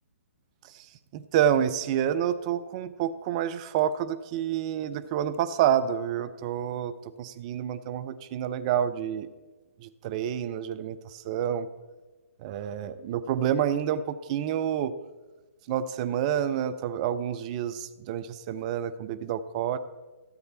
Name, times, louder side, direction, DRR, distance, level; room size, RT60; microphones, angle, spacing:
voice 1, 1.1-6.9 7.2-9.3 9.8-11.7 12.4-14.9 15.7-19.8, right 9 dB, 30° right, 12 dB, 0.5 m, -28 dB
13.0 x 7.9 x 4.2 m, 1.2 s
figure-of-eight pair, 130°, 8 cm